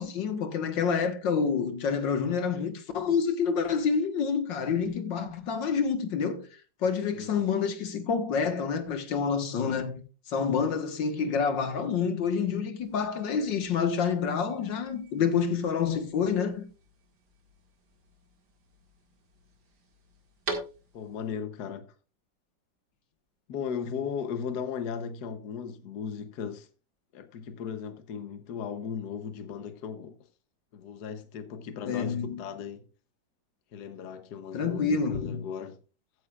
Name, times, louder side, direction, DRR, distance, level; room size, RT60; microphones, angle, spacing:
voice 1, 0.0-6.5 6.8-10.0 10.3-16.7 31.9-32.4 34.5-35.4, left 6 dB, 90° left, 2.1 m, -28 dB
voice 2, 7.1-7.5 20.9-21.9 23.5-26.7 27.1-30.2 30.7-32.8 33.7-35.8, left 7 dB, 65° left, 1.5 m, -37 dB
sound 1, 12.8-21.3, right 3 dB, 65° right, 2.6 m, -45 dB
15.0 x 9.4 x 2.4 m
omnidirectional pair, 1.9 m